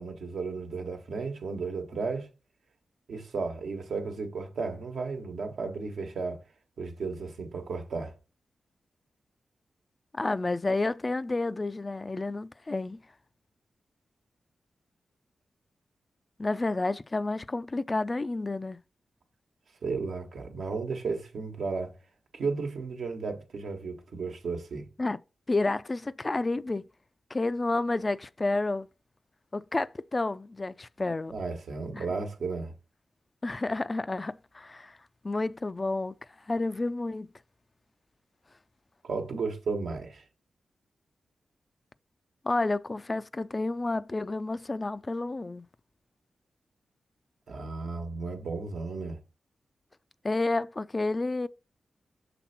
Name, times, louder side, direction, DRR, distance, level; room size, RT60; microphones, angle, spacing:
voice 1, 0.0-2.3 3.1-6.4 6.8-8.1 19.8-22.0 22.3-24.9 31.3-32.7 39.0-40.2 47.5-49.2, right 4 dB, 75° right, 1.2 m, -34 dB
voice 2, 10.1-13.0 16.4-18.8 25.0-25.2 25.5-26.8 27.3-28.9 29.5-31.4 31.9-32.1 33.4-35.0 35.2-36.1 36.5-37.3 42.4-45.7 50.2-51.5, left 2 dB, 35° left, 0.4 m, -30 dB
6.0 x 3.3 x 5.7 m
supercardioid pair, 45°, 0 cm